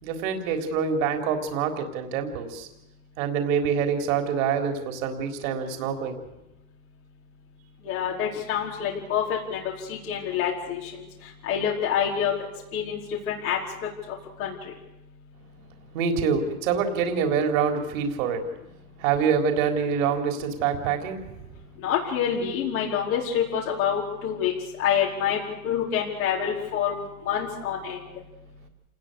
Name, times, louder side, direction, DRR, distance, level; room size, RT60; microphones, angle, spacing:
voice 1, 0.0-2.7 3.2-6.2 15.9-18.4 19.0-21.2, right 6 dB, 65° right, 5 dB, 3.8 m, -25 dB
voice 2, 7.8-9.6 9.9-10.9 11.4-12.3 12.7-13.0 13.3-13.6 14.4-14.5 21.8-24.5 24.8-25.4 25.6-28.0, left 8 dB, 75° left, -3 dB, 5.0 m, -26 dB
27.5 x 20.0 x 6.8 m, 0.95 s
supercardioid pair, 125°, 42 cm